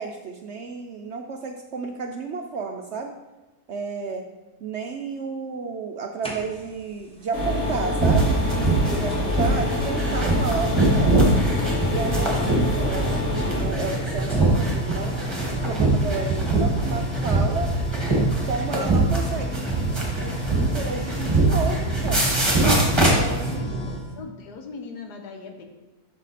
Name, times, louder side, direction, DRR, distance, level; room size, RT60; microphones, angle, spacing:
voice 1, 0.0-3.1 3.7-4.2 4.6-11.1 11.9-15.2 15.6-17.7 18.4-22.4 23.0-23.9, right 5 dB, 65° right, 4 dB, 0.7 m, -32 dB
sound 1, 6.2-6.9 8.2-8.3 9.1-24.1, right 1 dB, 5° left, 0.8 m, -31 dB
sound 2, 7.3-13.6, left 1 dB, 55° left, 3.3 m, -26 dB
sound 3, 8.0-23.5, right 2 dB, 20° right, 1.5 m, -23 dB
voice 2, 24.1-25.6, left 4 dB, 85° left, 3 dB, 1.6 m, -39 dB
7.2 x 6.5 x 4.2 m, 1.1 s
omnidirectional pair, 1.7 m